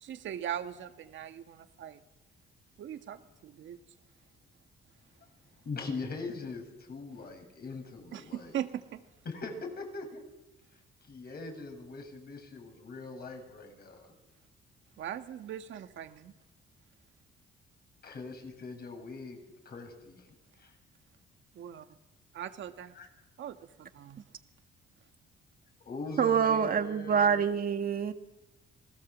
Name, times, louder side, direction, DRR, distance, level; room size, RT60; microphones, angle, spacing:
voice 1, 0.0-2.0 2.8-3.8 8.1-9.0 15.0-16.3 21.5-21.8 22.4-22.9 23.4-24.2, right 10 dB, 70° right, 7 dB, 1.9 m, -40 dB
voice 2, 5.6-8.5 9.2-10.2 11.1-14.1 18.0-20.7 22.9-23.1 25.8-27.5, left 3 dB, 50° left, 4 dB, 7.5 m, -41 dB
voice 3, 26.2-28.1, right 7 dB, 45° right, 8 dB, 1.6 m, -26 dB
27.5 x 19.5 x 7.5 m, 1.0 s
cardioid pair, 90°, 20 cm